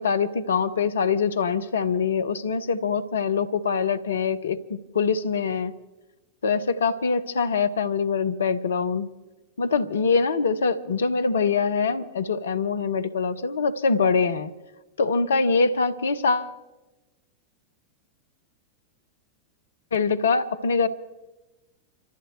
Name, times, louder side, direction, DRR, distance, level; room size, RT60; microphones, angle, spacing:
voice 1, 0.0-5.7 6.4-9.1 9.6-14.5 15.0-16.5 19.9-20.9, left 5 dB, 65° left, 0.8 m, -24 dB
28.5 x 14.0 x 3.2 m
figure-of-eight pair, 90°, 0 cm